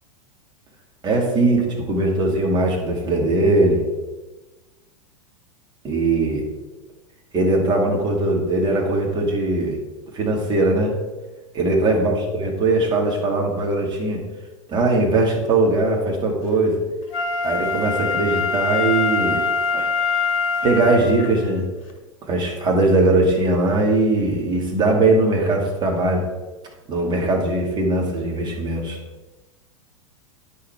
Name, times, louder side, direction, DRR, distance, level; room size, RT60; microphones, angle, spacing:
voice 1, 1.0-3.8 5.8-6.4 7.3-9.8 10.1-10.9 11.5-14.2 14.7-16.8 17.4-19.4 19.7-19.9 20.6-21.6 22.3-26.3 26.9-29.0, right 2 dB, 25° right, 0 dB, 2.4 m, -20 dB
Wind instrument woodwind instrument, 17.1-21.4 21.9-22.0, left 4 dB, 45° left, 1.5 m, -23 dB
10.0 x 6.7 x 4.8 m, 1.2 s
figure-of-eight pair, 90°, 17 cm